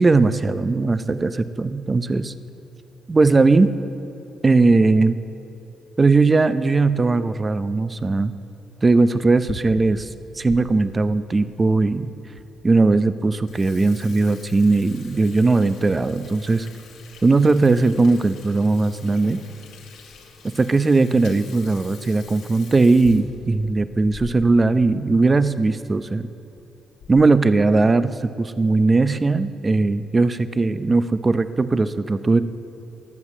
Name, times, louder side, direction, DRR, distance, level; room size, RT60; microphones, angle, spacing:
voice 1, 0.0-2.3 3.1-3.7 4.4-5.2 6.0-8.3 8.8-10.1 10.4-12.1 12.6-16.7 17.2-19.4 20.6-26.3 27.1-32.4, right 3 dB, 25° right, 12 dB, 0.7 m, -18 dB
Water tap faucet / Sink (filling or washing), 9.4-10.6 11.1-11.2 11.9-12.0 12.4-12.5 12.8-13.0 13.3-24.7 25.0-25.1 25.4-25.5 26.3-26.6 27.0-27.4, left 5 dB, 90° left, 2.5 m, -43 dB
23.0 x 8.0 x 7.4 m, 2.8 s
cardioid pair, 90°, 0 cm